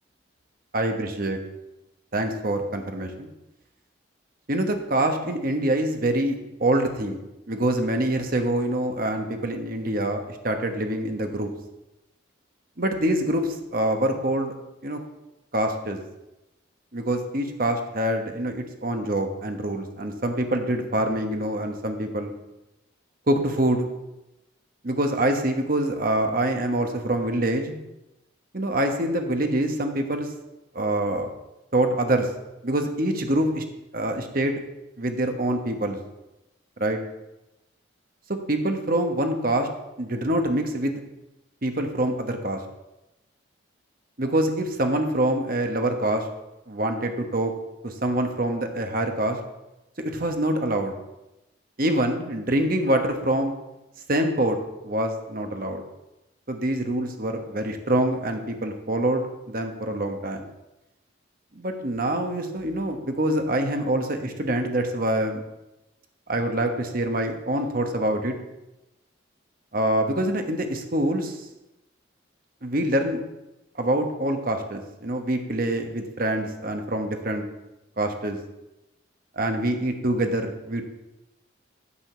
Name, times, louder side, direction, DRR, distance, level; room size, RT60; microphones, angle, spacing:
voice 1, 0.7-1.4 2.1-3.3 4.5-7.2 7.5-11.5 12.8-14.5 14.8-15.0 15.5-16.0 16.9-22.3 23.3-23.9 24.8-27.8 28.5-30.3 30.7-31.3 31.7-32.3 32.6-33.6 33.9-34.6 35.0-36.0 36.8-37.0 38.3-39.7 40.0-40.9 41.6-42.6 44.2-46.3 46.7-47.5 47.8-49.4 50.0-50.9 51.8-53.5 54.1-54.6 54.8-55.8 56.5-60.4 61.5-65.4 66.3-68.4 69.7-71.5 72.6-73.2 73.8-77.4 78.0-78.4 79.3-80.8, right 1 dB, 50° right, 5 dB, 1.2 m, -25 dB
9.8 x 5.1 x 7.4 m, 0.96 s
head